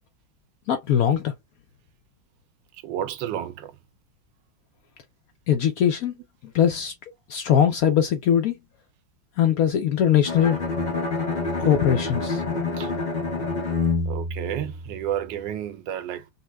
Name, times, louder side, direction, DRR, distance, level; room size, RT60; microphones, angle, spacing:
voice 1, 0.7-1.3 5.5-6.1 6.5-6.9 7.3-8.6 9.4-10.6 11.6-12.4, left 9 dB, 75° left, 0.8 m, -21 dB
voice 2, 2.7-3.8 12.8-12.9 14.1-16.3, right 11 dB, 75° right, 1.3 m, -31 dB
Bowed string instrument, 10.2-15.3, left 3 dB, 30° left, 0.9 m, -27 dB
5.4 x 2.1 x 2.2 m
omnidirectional pair, 2.1 m